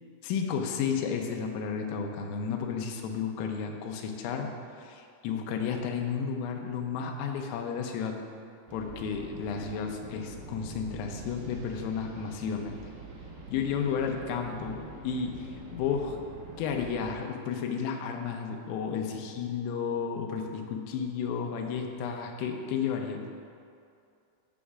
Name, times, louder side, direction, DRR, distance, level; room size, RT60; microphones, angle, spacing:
voice 1, 0.2-4.5 4.8-8.2 8.7-12.9 13.5-16.2 16.6-23.2, left 6 dB, 90° left, 3 dB, 3.4 m, -32 dB
sound 1, 8.7-17.1, right 3 dB, 70° right, 3.5 m, -45 dB
16.5 x 6.3 x 2.4 m, 2.5 s
omnidirectional pair, 5.8 m